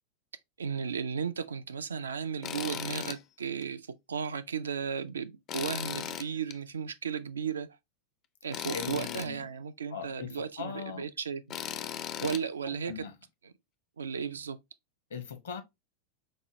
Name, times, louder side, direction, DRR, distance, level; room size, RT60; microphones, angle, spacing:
voice 1, 0.6-7.8 8.4-11.6 12.2-13.1 13.4-13.5 14.0-14.6, right 6 dB, 70° right, 0.3 m, -35 dB
Tools, 2.4-3.2 3.6-3.7 5.5-6.6 8.5-9.3 11.5-12.4, left 9 dB, 35° left, 0.4 m, -37 dB
voice 2, 8.7-9.5 9.9-11.1 12.9-13.1 15.1-15.6, left 6 dB, 60° left, 0.8 m, -40 dB
5.2 x 2.2 x 3.0 m
figure-of-eight pair, 90°, 0 cm